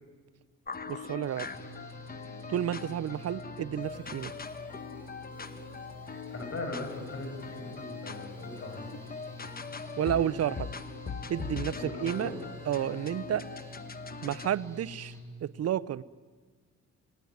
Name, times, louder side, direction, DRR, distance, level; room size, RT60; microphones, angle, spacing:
sound 1, 0.7-14.5, left 5 dB, 30° left, 1.3 m, -42 dB
voice 1, 0.9-1.5 2.5-4.3 10.0-10.7 11.3-12.3 12.7-13.4 14.2-15.1 15.4-16.0, right 10 dB, 55° right, 17 dB, 0.8 m, -31 dB
Engine / Mechanical fan, 1.3-15.2, left 2 dB, 10° left, 7.0 m, -47 dB
Alarm, 3.8-13.8, right 3 dB, 15° right, 3.5 m, -55 dB
voice 2, 6.3-8.9 11.7-12.4, left 2 dB, 45° left, 4 dB, 7.9 m, -39 dB
28.5 x 20.0 x 9.5 m, 1.5 s
cardioid pair, 90°, 30 cm